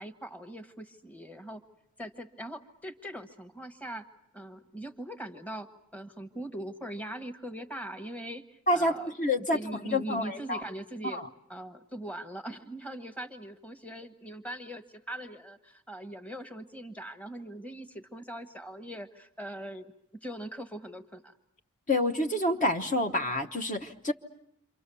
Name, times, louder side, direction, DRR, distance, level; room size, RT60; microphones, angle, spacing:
voice 1, 0.0-1.6 2.0-4.1 4.3-9.1 9.4-11.2 11.5-19.9 20.2-21.3, right 1 dB, 5° left, 7 dB, 1.3 m, -41 dB
voice 2, 8.7-10.6 11.1-11.3 21.9-24.1, left 1 dB, 35° left, 5 dB, 1.1 m, -28 dB
28.5 x 25.5 x 6.9 m, 0.74 s
head